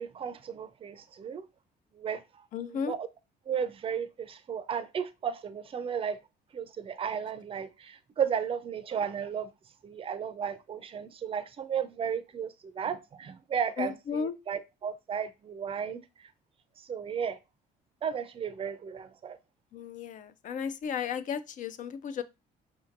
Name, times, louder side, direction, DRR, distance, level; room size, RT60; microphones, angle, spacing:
voice 1, 0.0-1.4 2.0-2.2 2.6-3.1 3.5-6.2 6.5-9.5 9.8-16.0 16.8-17.4 18.0-19.4, right 7 dB, 35° right, 0.5 m, -34 dB
voice 2, 2.5-2.9 13.8-14.4 19.7-22.2, left 7 dB, 50° left, 0.4 m, -34 dB
5.1 x 2.7 x 2.5 m
cardioid pair, 110°, 17 cm